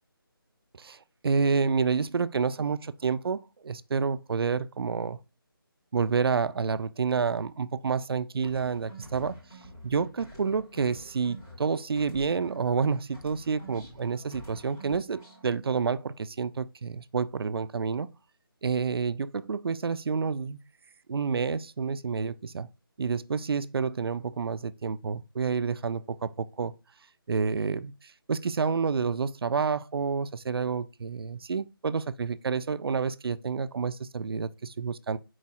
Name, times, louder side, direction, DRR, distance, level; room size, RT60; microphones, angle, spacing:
voice 1, 0.8-5.2 5.9-9.4 9.8-18.1 18.6-20.6 21.1-22.7 23.0-26.7 27.3-35.2, right 5 dB, 75° right, 0.4 m, -29 dB
sound 1, 8.4-12.8 13.1-15.5, right 1 dB, 10° left, 0.4 m, -47 dB
4.6 x 2.0 x 4.1 m
figure-of-eight pair, 170°, 12 cm